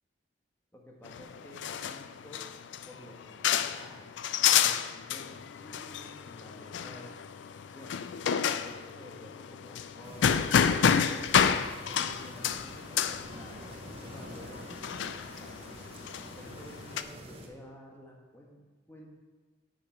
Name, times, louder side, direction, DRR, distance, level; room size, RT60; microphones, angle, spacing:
voice 1, 0.7-2.5 2.8-4.2 4.5-8.1 8.6-11.6 11.9-13.7 14.0-15.8 16.2-19.2, equal, 10° left, -1 dB, 1.3 m, -51 dB
sound 1, 1.0-17.0, left 8 dB, 80° left, 0.4 m, -30 dB
sound 2, 10.0-17.5, right 1 dB, 35° right, 1.0 m, -48 dB
9.6 x 5.1 x 4.4 m, 1.3 s
head